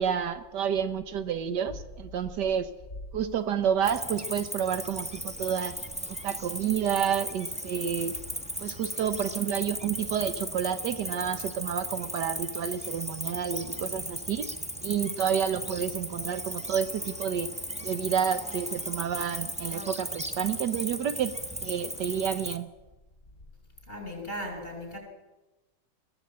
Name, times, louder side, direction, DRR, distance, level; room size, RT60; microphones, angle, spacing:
voice 1, 0.0-2.7 3.1-5.8 6.1-8.2 8.6-14.5 14.8-17.5 17.8-21.4 21.6-22.7, right 8 dB, 70° right, 11 dB, 1.4 m, -30 dB
Cricket, 3.8-22.6, equal, 5° right, 0.9 m, -36 dB
voice 2, 23.9-25.0, equal, 30° left, 2 dB, 5.9 m, -37 dB
21.5 x 15.0 x 8.5 m, 1.1 s
omnidirectional pair, 2.0 m